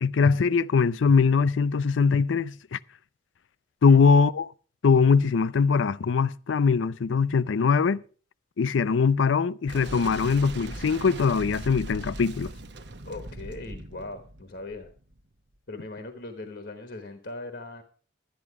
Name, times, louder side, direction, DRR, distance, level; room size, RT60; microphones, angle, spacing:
voice 1, 0.0-2.8 3.8-4.5 4.8-8.0 8.6-12.5, left 5 dB, 80° left, 0.4 m, -22 dB
Boom, 9.7-15.2, right 1 dB, 60° right, 0.9 m, -39 dB
voice 2, 13.0-14.9 15.7-17.8, left 2 dB, 60° left, 1.2 m, -39 dB
12.0 x 10.5 x 4.8 m
head